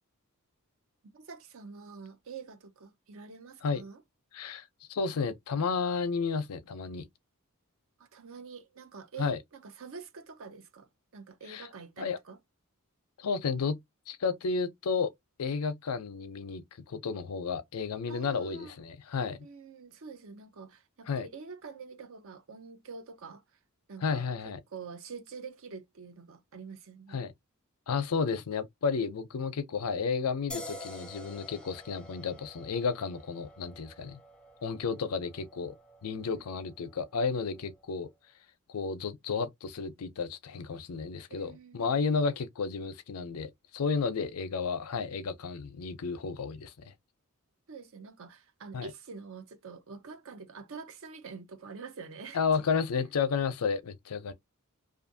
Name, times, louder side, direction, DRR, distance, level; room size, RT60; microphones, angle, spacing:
voice 1, 1.1-4.0 8.1-10.9 11.1-12.4 18.1-18.8 19.4-23.4 23.9-24.3 24.7-27.2 36.3-36.7 41.3-42.1 47.7-52.4 52.7-52.8, right 5 dB, 65° right, 0.6 m, -46 dB
voice 2, 4.3-4.6 4.9-7.1 9.2-9.4 11.5-11.7 12.0-12.2 13.2-13.8 14.1-15.1 15.4-19.4 21.1-21.3 24.0-24.6 27.1-27.3 27.9-34.2 34.6-35.7 36.0-38.1 38.7-46.7 48.7-48.9 52.3-54.3, left 5 dB, 90° left, 0.5 m, -32 dB
sound 1, 30.5-37.8, left 1 dB, 5° left, 0.5 m, -48 dB
2.6 x 2.5 x 2.6 m
head